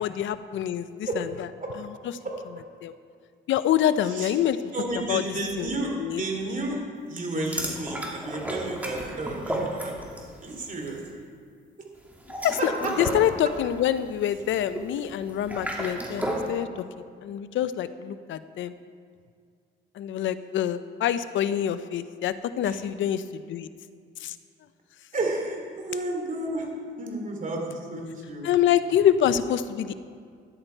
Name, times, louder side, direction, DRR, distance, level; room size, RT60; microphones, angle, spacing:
voice 1, 0.0-1.5 1.8-1.9 2.8-2.9 3.5-4.6 4.9-5.2 5.6-6.2 12.4-16.8 17.2-18.7 19.9-23.7 24.2-24.4 28.4-29.9, left 10 dB, 75° left, 13 dB, 0.6 m, -26 dB
voice 2, 4.7-6.8 7.1-10.1 10.4-11.0 12.6-12.9 22.6-22.8 25.1-26.7 27.0-28.5, right 2 dB, 40° right, 1 dB, 3.0 m, -31 dB
sound 1, 7.4-10.4 10.6-11.0 12.1-16.5, right 1 dB, 10° right, 2.6 m, -33 dB
14.0 x 10.5 x 4.5 m, 2.1 s
cardioid pair, 90°, 20 cm